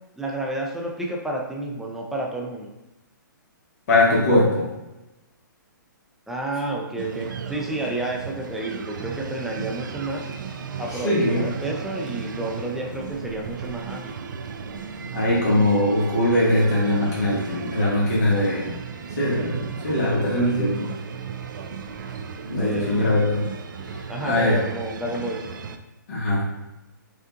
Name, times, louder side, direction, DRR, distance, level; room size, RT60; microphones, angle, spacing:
voice 1, 0.2-2.7 6.3-10.2 10.8-14.2 22.6-23.2 24.1-25.5, right 2 dB, 5° right, -1 dB, 0.5 m, -30 dB
voice 2, 3.9-4.7 11.0-11.5 15.1-18.7 19.2-20.9 22.5-23.4 24.2-24.6 26.1-26.5, left 1 dB, 50° left, -7 dB, 1.5 m, -21 dB
sound 1, 7.0-25.8, right 6 dB, 65° right, 0.4 m, -35 dB
5.3 x 2.5 x 2.5 m, 0.97 s
hypercardioid pair, 140°, 11 cm